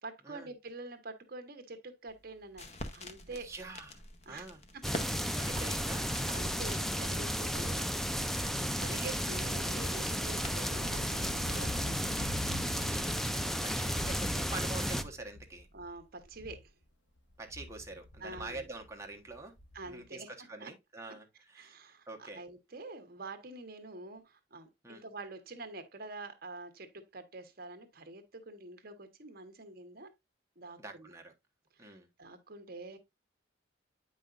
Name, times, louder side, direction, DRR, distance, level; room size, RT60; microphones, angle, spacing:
voice 1, 0.0-3.5 4.3-4.5 4.7-5.8 6.3-7.8 8.4-12.1 13.7-14.1 15.7-16.7 18.2-18.7 19.7-20.3 20.6-20.7 21.6-30.1 30.6-31.1 31.7-33.0, right 2 dB, 50° right, 1.2 m, -46 dB
sound 1, 2.1-13.3, left 2 dB, 35° left, 0.9 m, -49 dB
voice 2, 3.3-4.0 4.3-4.6 5.4-6.1 8.7-9.1 11.4-11.7 12.8-15.7 17.4-19.5 19.9-22.4 24.8-25.0 30.8-31.3 31.8-32.1, right 2 dB, 15° right, 1.1 m, -46 dB
sound 2, 4.8-15.0, equal, ahead, 0.3 m, -33 dB
sound 3, 9.5-16.8 17.2-20.0, left 1 dB, 65° left, 1.4 m, -46 dB
8.9 x 5.4 x 2.5 m
head